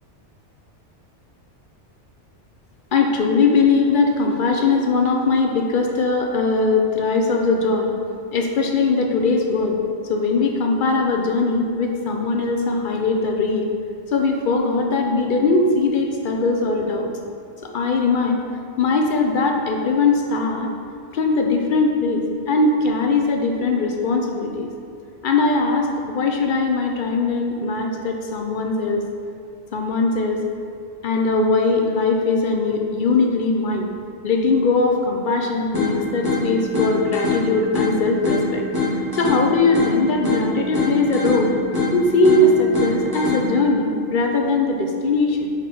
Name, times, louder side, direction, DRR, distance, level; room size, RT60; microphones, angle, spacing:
voice 1, 2.9-7.9 8.3-9.8 10.1-13.7 14.1-17.1 17.6-18.4 18.8-20.7 21.1-24.7 25.2-29.0 29.7-30.4 31.0-33.9 34.2-38.6 39.1-41.5 41.9-45.5, left 3 dB, 55° left, 2 dB, 0.6 m, -20 dB
sound 1, 35.7-43.7, left 2 dB, 20° right, 1.5 m, -24 dB
5.3 x 4.5 x 4.2 m, 2.4 s
omnidirectional pair, 1.2 m